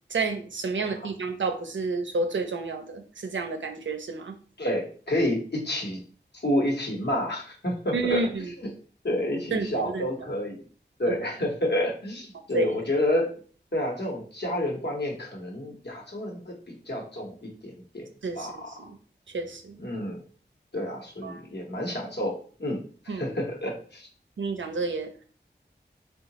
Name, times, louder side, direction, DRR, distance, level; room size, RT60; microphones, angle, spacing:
voice 1, 0.1-4.3 7.9-8.5 9.5-10.1 11.1-11.2 12.5-12.8 18.2-18.9 19.3-19.8 21.2-21.4 23.1-23.3 24.4-25.2, right 3 dB, 90° right, 5 dB, 0.5 m, -30 dB
voice 2, 4.6-6.0 6.4-8.2 8.6-8.7 9.0-10.6 11.0-13.3 13.7-16.5 16.9-18.1 18.3-18.7 19.8-20.2 20.7-22.3 22.6-24.1, left 1 dB, 65° left, -1 dB, 1.1 m, -29 dB
3.7 x 2.3 x 2.9 m, 0.42 s
wide cardioid pair, 40°, 19 cm